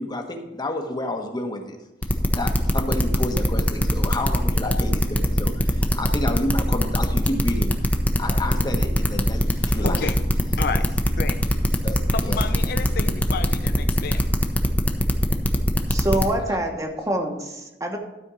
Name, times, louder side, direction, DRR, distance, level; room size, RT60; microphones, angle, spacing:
voice 1, 0.0-1.8 2.3-7.8 8.2-10.0 11.8-12.5 12.7-12.9, left 1 dB, 25° left, 4 dB, 1.1 m, -30 dB
sound 1, 2.0-16.2, equal, 10° left, 0.8 m, -21 dB
voice 2, 9.8-10.1 10.6-10.8 11.2-11.4 12.1-14.2, left 5 dB, 60° left, 9 dB, 0.5 m, -30 dB
voice 3, 15.9-18.0, right 1 dB, 20° right, 3 dB, 1.2 m, -26 dB
12.5 x 4.4 x 6.2 m, 1.0 s
head